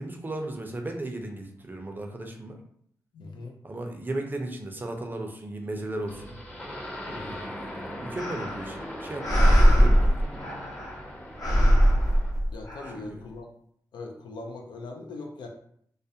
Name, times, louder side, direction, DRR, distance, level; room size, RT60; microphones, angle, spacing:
voice 1, 0.0-2.6 3.6-6.4 7.0-10.2 12.9-13.2, right 2 dB, 25° right, 3 dB, 0.4 m, -36 dB
voice 2, 3.1-3.6 7.0-7.5 12.5-13.5 13.9-15.5, left 3 dB, 85° left, 2 dB, 0.4 m, -40 dB
sound 1, 6.1-12.4, equal, 15° left, 0.6 m, -40 dB
sound 2, 8.2-8.8 9.2-11.0 11.4-12.9, equal, 55° left, 0.8 m, -21 dB
2.3 x 2.1 x 2.7 m, 0.67 s
cardioid pair, 65°, 8 cm